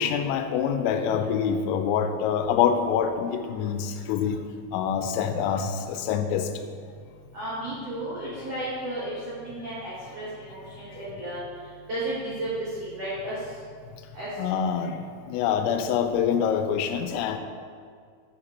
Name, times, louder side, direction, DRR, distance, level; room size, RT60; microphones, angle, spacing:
voice 1, 0.0-4.4 4.7-6.5 14.4-15.0 15.3-17.4, left 7 dB, 85° left, 8 dB, 3.3 m, -25 dB
voice 2, 7.3-11.4 11.9-13.3 14.1-14.3, right 1 dB, 80° right, -10 dB, 1.4 m, -33 dB
8.0 x 7.1 x 4.3 m, 2.1 s
omnidirectional pair, 5.9 m